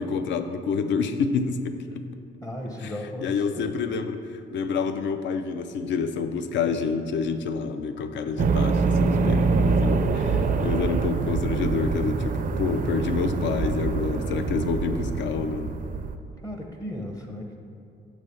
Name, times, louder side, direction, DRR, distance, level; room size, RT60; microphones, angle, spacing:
voice 1, 0.0-1.8 2.8-2.9 3.2-4.2 4.5-15.7, left 5 dB, 65° left, 9 dB, 0.4 m, -28 dB
voice 2, 2.4-3.7 14.3-14.7 16.4-17.6, left 1 dB, 15° left, 2 dB, 0.6 m, -37 dB
sound 1, 8.4-16.1, right 4 dB, 45° right, 0.4 m, -25 dB
6.1 x 3.2 x 5.4 m, 2.4 s
cardioid pair, 90°, 20 cm